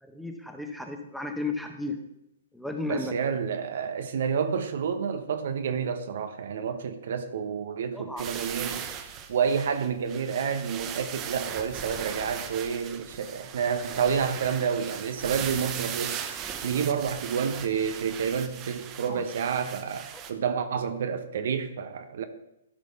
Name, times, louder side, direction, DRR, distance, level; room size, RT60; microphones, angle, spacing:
voice 1, 0.0-2.0 2.5-3.1 7.9-8.3 19.1-19.2 20.1-20.2, left 2 dB, ahead, 4 dB, 1.2 m, -34 dB
voice 2, 2.9-8.9 9.3-16.2 16.6-22.2, right 6 dB, 60° right, 8 dB, 0.9 m, -29 dB
sound 1, 8.2-20.3, right 8 dB, 30° right, 1.0 m, -38 dB
13.0 x 5.1 x 5.7 m, 0.86 s
figure-of-eight pair, 120°, 0 cm